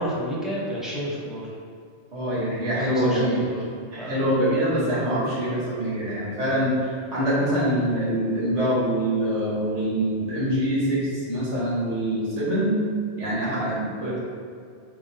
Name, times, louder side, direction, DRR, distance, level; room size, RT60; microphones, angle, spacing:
voice 1, 0.0-1.4 2.8-3.6 4.0-4.3, equal, ahead, -7 dB, 0.8 m, -30 dB
voice 2, 2.1-3.4 3.9-12.8 13.2-14.2, right 1 dB, 90° right, -8 dB, 1.6 m, -24 dB
4.7 x 3.5 x 2.7 m, 2.2 s
omnidirectional pair, 1.2 m